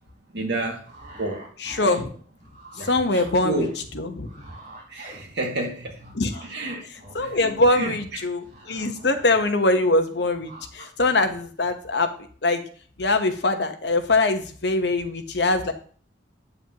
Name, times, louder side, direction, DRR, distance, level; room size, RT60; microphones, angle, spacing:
voice 1, 0.3-0.9 1.2-1.5 2.7-3.7 4.9-6.0 6.5-6.8 7.2-7.9, right 2 dB, 65° right, 2.2 m, -30 dB
sound 1, 0.8-5.7 6.0-9.4 9.7-10.9 11.2-11.4, right 1 dB, 45° right, 4.1 m, -47 dB
voice 2, 1.6-2.1 2.8-3.7 3.9-4.3 6.1-6.4 6.9-12.1 12.4-12.6 13.0-15.7, left 2 dB, 65° left, 1.1 m, -23 dB
8.9 x 8.0 x 3.0 m
head